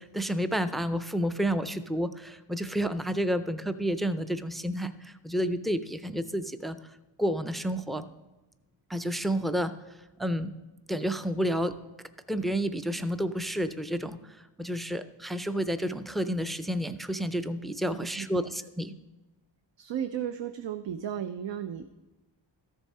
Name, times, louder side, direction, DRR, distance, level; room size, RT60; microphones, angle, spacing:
voice 1, 0.0-6.8 7.2-8.1 8.9-9.7 10.2-10.5 10.9-11.8 12.3-18.9, equal, ahead, 11 dB, 0.4 m, -30 dB
voice 2, 18.2-18.5 19.8-21.8, right 9 dB, 70° right, 9 dB, 0.6 m, -34 dB
13.5 x 7.0 x 4.2 m, 1.1 s
wide cardioid pair, 90°, 46 cm